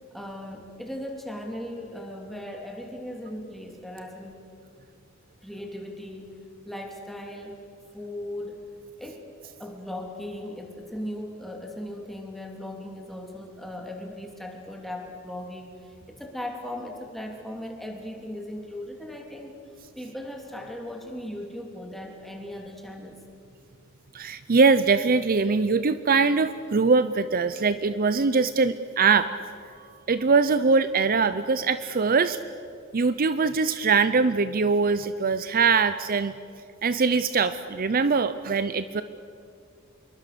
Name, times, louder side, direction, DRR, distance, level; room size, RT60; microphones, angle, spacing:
voice 1, 0.1-4.4 5.4-6.3 6.6-7.6 7.9-8.6 9.0-15.7 16.2-19.6 19.9-23.2, left 1 dB, ahead, 1 dB, 3.1 m, -38 dB
voice 2, 24.1-29.3 30.1-32.4 32.9-36.3 36.8-39.0, right 4 dB, 45° right, 13 dB, 0.6 m, -22 dB
27.0 x 23.0 x 6.8 m, 2.4 s
head